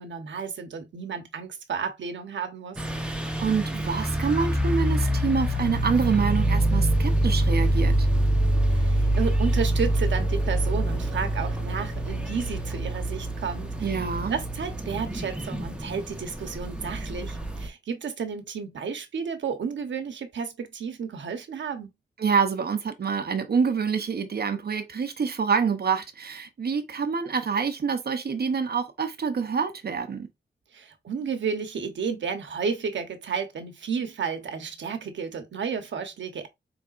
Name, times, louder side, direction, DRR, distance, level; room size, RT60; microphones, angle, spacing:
voice 1, 0.0-2.8 8.7-14.0 14.3-21.9 30.7-36.5, right 6 dB, 85° right, 1.0 m, -32 dB
sound 1, 2.8-17.7, right 1 dB, 5° right, 0.9 m, -25 dB
voice 2, 3.1-8.1 13.8-14.4 22.2-30.3, right 5 dB, 60° right, 0.7 m, -26 dB
4.9 x 3.4 x 2.5 m
cardioid pair, 75°, 19 cm